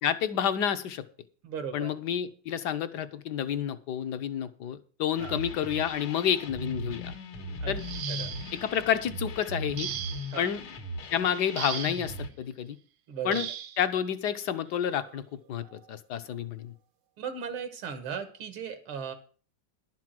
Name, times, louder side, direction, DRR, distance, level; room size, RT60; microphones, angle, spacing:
voice 1, 0.0-1.0 1.7-7.1 7.7-7.8 8.5-9.9 10.4-10.6 11.1-12.8 13.2-13.5 13.8-16.7, left 9 dB, 65° left, 11 dB, 1.2 m, -29 dB
voice 2, 1.4-1.9 5.2-5.4 7.6-8.3 10.3-10.5 13.1-13.4 17.2-19.1, right 7 dB, 80° right, 9 dB, 2.4 m, -37 dB
sound 1, 5.2-12.3, left 1 dB, 85° left, 2.2 m, -38 dB
sound 2, 7.8-8.7 9.8-10.4 11.6-12.1 13.3-13.8 15.0-15.1 15.6-15.9, right 10 dB, 65° right, 1.3 m, -37 dB
11.5 x 6.1 x 7.6 m, 0.40 s
omnidirectional pair, 2.3 m